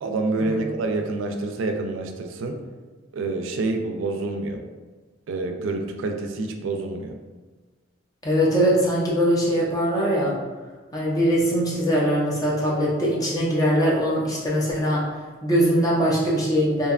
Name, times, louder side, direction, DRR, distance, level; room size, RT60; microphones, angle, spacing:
voice 1, 0.0-2.6 3.1-4.6 5.3-7.1, right 3 dB, 80° right, 5 dB, 0.3 m, -27 dB
voice 2, 8.2-10.3 10.9-15.0 15.4-16.9, equal, 20° left, -5 dB, 0.4 m, -21 dB
2.6 x 2.2 x 2.3 m, 1.3 s
head